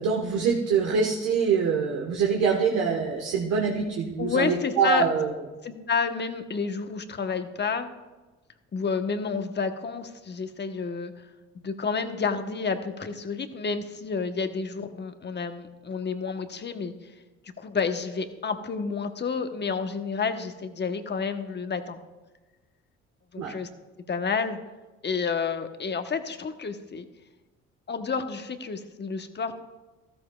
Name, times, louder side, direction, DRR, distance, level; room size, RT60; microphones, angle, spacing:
voice 1, 0.0-5.3 23.4-23.5, right 6 dB, 75° right, -1 dB, 1.4 m, -24 dB
voice 2, 4.2-5.1 5.6-7.9 8.7-11.3 11.6-17.1 17.6-22.0 23.3-23.7 24.1-24.6 25.0-27.0 27.9-29.5, left 5 dB, 35° left, 8 dB, 1.1 m, -30 dB
13.5 x 13.0 x 2.4 m, 1.2 s
supercardioid pair, 70°, 31 cm